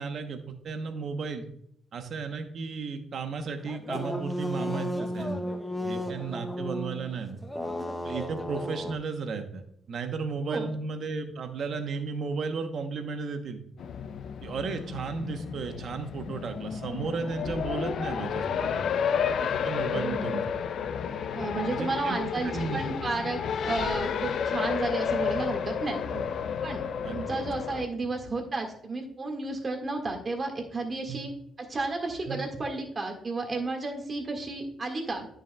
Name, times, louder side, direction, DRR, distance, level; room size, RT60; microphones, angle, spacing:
voice 1, 0.0-1.5 1.9-5.4 5.8-7.4 8.0-13.6 14.4-19.1 19.4-20.4 21.7-22.2 22.4-22.8 26.1-26.2 27.0-27.3 31.1-31.2 32.3-32.5, right 4 dB, 60° right, 7 dB, 0.8 m, -34 dB
sound 1, 3.7-8.9, equal, 10° left, 0.7 m, -33 dB
Race car auto racing, 13.8-27.9, left 7 dB, 65° left, 0.4 m, -31 dB
voice 2, 19.8-20.4 21.3-26.0 26.6-26.8 27.1-31.3 31.6-35.3, right 3 dB, 35° right, 3 dB, 1.7 m, -32 dB
9.7 x 6.3 x 2.3 m, 0.71 s
cardioid pair, 95°, 0 cm